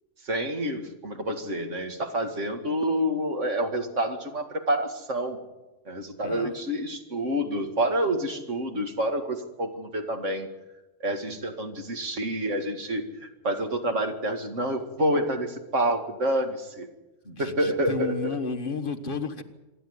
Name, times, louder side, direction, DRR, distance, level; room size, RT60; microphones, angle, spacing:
voice 1, 0.2-5.4 5.9-10.5 11.0-16.9 17.4-18.4, right 1 dB, 65° right, 5 dB, 2.4 m, -28 dB
voice 2, 6.2-6.5 17.2-19.4, left 4 dB, 40° left, 6 dB, 1.6 m, -32 dB
26.0 x 11.0 x 9.6 m, 1.1 s
omnidirectional pair, 1.4 m